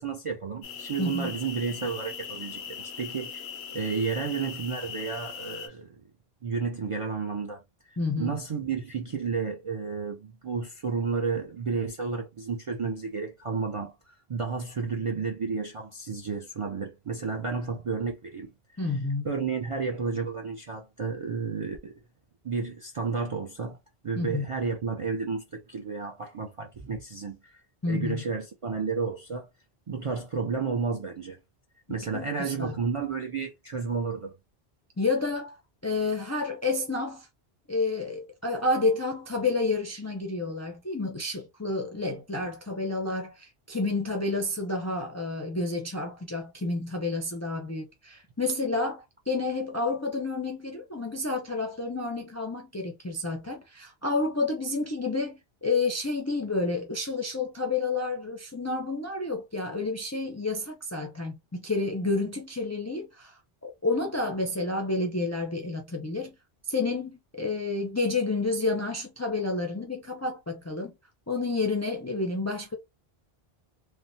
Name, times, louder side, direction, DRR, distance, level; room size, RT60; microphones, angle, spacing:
voice 1, 0.0-3.4 3.7-5.9 6.4-18.5 19.2-22.0 22.4-23.8 24.0-27.6 27.9-29.5 29.9-31.4 31.9-34.3, right 5 dB, 50° right, 0.4 m, -32 dB
sound 1, 0.6-5.7, left 7 dB, 85° left, 0.9 m, -40 dB
voice 2, 1.0-1.3 8.0-8.3 18.8-19.3 24.2-24.5 27.8-28.2 32.1-32.8 35.0-35.6 35.8-37.3 37.7-66.4 66.7-70.9 71.3-72.8, left 3 dB, 25° left, 0.3 m, -30 dB
3.2 x 2.0 x 2.6 m
omnidirectional pair, 1.0 m